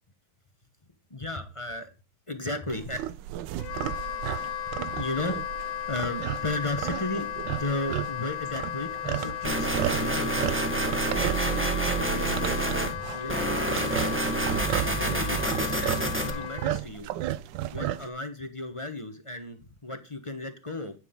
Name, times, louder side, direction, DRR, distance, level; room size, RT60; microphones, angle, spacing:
voice 1, 1.1-1.9 2.3-3.0 4.9-5.4 5.9-9.7 10.0-10.5 11.2-14.3 14.9-17.1 17.7-20.9, left 2 dB, 20° left, 7 dB, 0.8 m, -35 dB
sound 1, 2.7-18.1, right 13 dB, 70° right, 1.2 m, -34 dB
Wind instrument woodwind instrument, 3.6-16.8, left 11 dB, 70° left, 1.2 m, -36 dB
sound 2, 9.4-12.9 13.3-16.3, right 2 dB, 5° right, 1.3 m, -28 dB
9.4 x 9.2 x 3.8 m, 0.32 s
omnidirectional pair, 2.3 m